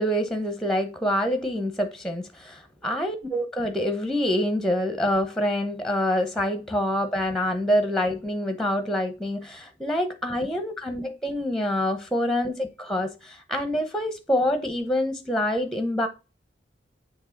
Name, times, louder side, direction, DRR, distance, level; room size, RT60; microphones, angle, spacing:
voice 1, 0.0-16.1, equal, ahead, 0.8 m, -26 dB
7.2 x 3.1 x 5.1 m
head